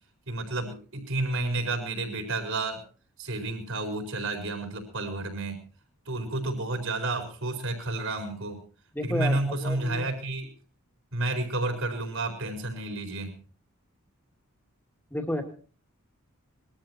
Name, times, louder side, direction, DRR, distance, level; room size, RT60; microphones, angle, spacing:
voice 1, 0.3-2.8 3.2-5.6 6.1-8.6 9.0-10.5 11.1-13.4, right 2 dB, 65° right, 3 dB, 4.5 m, -31 dB
voice 2, 8.9-10.1 15.1-15.4, left 1 dB, 10° left, 4 dB, 2.5 m, -31 dB
21.5 x 13.5 x 4.4 m, 0.39 s
head